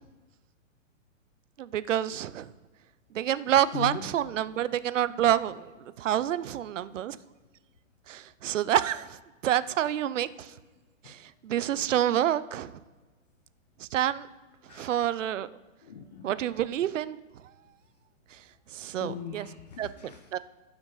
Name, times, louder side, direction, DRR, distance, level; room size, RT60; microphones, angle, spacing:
voice 1, 1.6-2.5 3.1-7.2 8.1-9.2 9.4-10.5 11.0-12.8 13.8-14.3 14.7-15.5 16.2-17.2 18.3-18.4 18.7-19.5 19.8-19.9 20.3-20.4, right 11 dB, 65° right, 16 dB, 0.6 m, -28 dB
voice 2, 3.7-4.1 11.0-11.1 14.7-15.0 15.8-16.3 19.0-20.3, left 6 dB, 30° left, 6 dB, 0.6 m, -39 dB
15.0 x 6.2 x 3.9 m, 1.3 s
hypercardioid pair, 170°, 40 cm